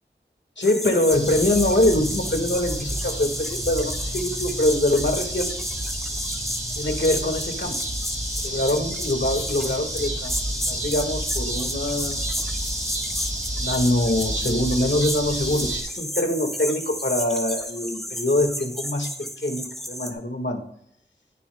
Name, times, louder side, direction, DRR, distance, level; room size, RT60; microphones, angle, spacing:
voice 1, 0.6-5.5 6.8-7.8 8.4-10.4 10.7-12.2 13.6-19.1 19.4-20.6, left 1 dB, 70° left, 4 dB, 1.9 m, -24 dB
sound 1, 0.6-20.1, equal, ahead, 1.5 m, -32 dB
sound 2, 1.1-15.8, right 1 dB, 40° right, 2.4 m, -31 dB
19.0 x 7.1 x 2.3 m, 0.71 s
wide cardioid pair, 40°, 19 cm